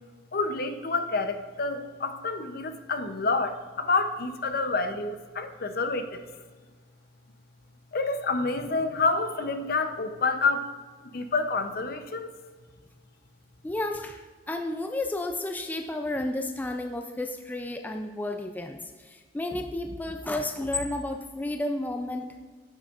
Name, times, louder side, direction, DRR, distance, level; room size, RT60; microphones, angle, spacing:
voice 1, 0.3-6.2 7.9-10.7 11.0-12.3, left 3 dB, 55° left, 8 dB, 0.6 m, -28 dB
voice 2, 13.6-14.2 14.5-22.4, left 2 dB, 10° left, 5 dB, 0.3 m, -32 dB
10.5 x 7.3 x 2.4 m, 1.5 s
head